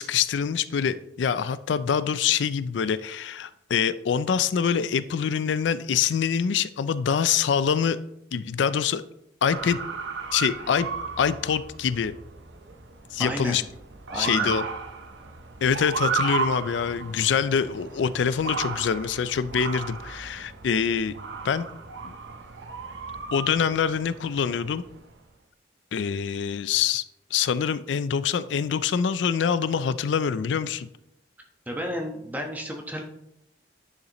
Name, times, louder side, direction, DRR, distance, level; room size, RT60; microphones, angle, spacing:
voice 1, 0.0-8.0 8.3-9.0 9.4-9.8 10.3-10.9 11.2-12.1 13.1-13.6 14.1-14.6 15.6-21.1 21.4-21.7 22.0-22.1 23.3-24.8 25.9-27.0 27.3-30.9, left 7 dB, 85° left, 15 dB, 0.4 m, -25 dB
Motor vehicle (road) / Siren, 9.5-25.1, right 5 dB, 90° right, 0.9 m, -34 dB
voice 2, 13.2-13.6 14.1-14.5 31.7-33.0, equal, 10° right, 2 dB, 1.0 m, -32 dB
10.0 x 6.6 x 3.0 m, 0.79 s
head